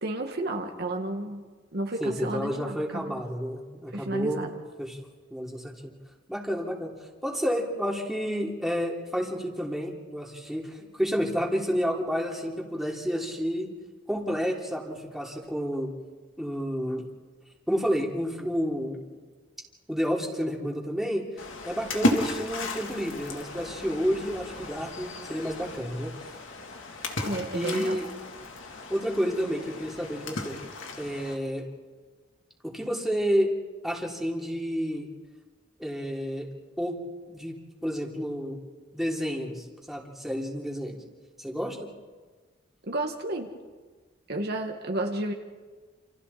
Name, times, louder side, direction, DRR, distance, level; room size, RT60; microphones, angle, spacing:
voice 1, 0.0-1.4 1.7-3.2 3.9-4.5 27.3-28.0 42.8-43.5 44.3-45.3, right 1 dB, 55° right, 3 dB, 1.9 m, -31 dB
voice 2, 2.0-4.5 4.8-5.0 5.3-5.9 6.3-6.9 7.2-13.7 14.1-15.9 16.4-17.0 17.7-19.1 19.9-21.2 21.6-26.1 27.5-28.1 28.9-30.5 31.0-31.6 32.6-33.5 33.8-35.1 35.8-36.5 36.8-37.0 37.3-37.6 37.8-38.6 38.9-41.0 41.4-41.8, equal, ahead, -2 dB, 3.3 m, -30 dB
Splash splatter, 21.4-31.3, left 1 dB, 75° left, 3.0 m, -34 dB
29.0 x 28.5 x 4.3 m, 1.4 s
head